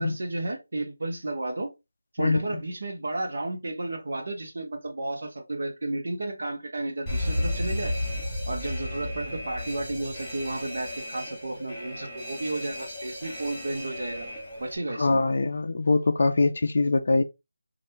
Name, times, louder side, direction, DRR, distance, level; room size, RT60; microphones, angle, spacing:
voice 1, 0.0-1.7 2.1-8.0 8.5-14.3 14.6-15.2, right 2 dB, 55° right, 0.8 m, -32 dB
voice 2, 2.2-2.6 15.0-17.2, left 3 dB, 45° left, 0.4 m, -23 dB
Alarm, 7.1-14.8, left 1 dB, 5° left, 0.9 m, -33 dB
3.3 x 2.5 x 2.9 m
figure-of-eight pair, 175°, 0 cm